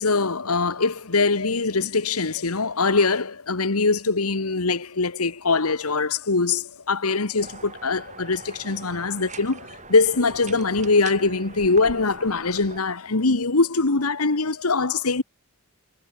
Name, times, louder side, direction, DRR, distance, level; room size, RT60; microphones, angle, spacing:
voice 1, 0.0-15.2, left 3 dB, 85° left, 1.5 m, -22 dB
sound 1, 7.4-12.8, right 4 dB, 35° right, 7.3 m, -42 dB
head